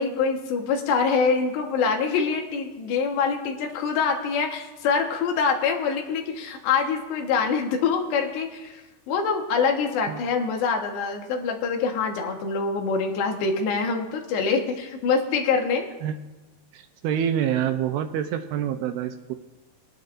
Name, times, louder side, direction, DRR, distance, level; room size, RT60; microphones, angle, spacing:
voice 1, 0.0-8.8 9.1-15.9, left 5 dB, 85° left, 2 dB, 3.5 m, -25 dB
voice 2, 16.7-19.3, right 9 dB, 80° right, 8 dB, 2.5 m, -27 dB
22.0 x 10.5 x 2.6 m, 1.1 s
omnidirectional pair, 4.8 m